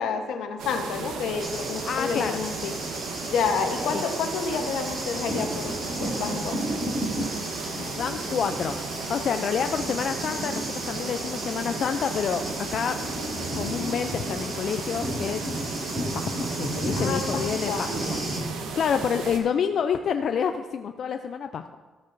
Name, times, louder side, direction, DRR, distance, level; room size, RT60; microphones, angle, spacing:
voice 1, 0.0-2.8 3.2-6.6 17.0-17.9, left 5 dB, 80° left, 5 dB, 1.1 m, -29 dB
sound 1, 0.6-19.4, right 4 dB, 90° right, 1.1 m, -35 dB
Thunder, 1.4-18.4, right 1 dB, 20° right, 2.4 m, -33 dB
voice 2, 1.8-2.4 3.9-4.0 7.6-8.8 9.1-13.0 13.5-15.4 16.1-21.8, left 7 dB, 50° left, 7 dB, 0.4 m, -28 dB
14.0 x 8.0 x 2.6 m, 1.4 s
cardioid pair, 125°, 0 cm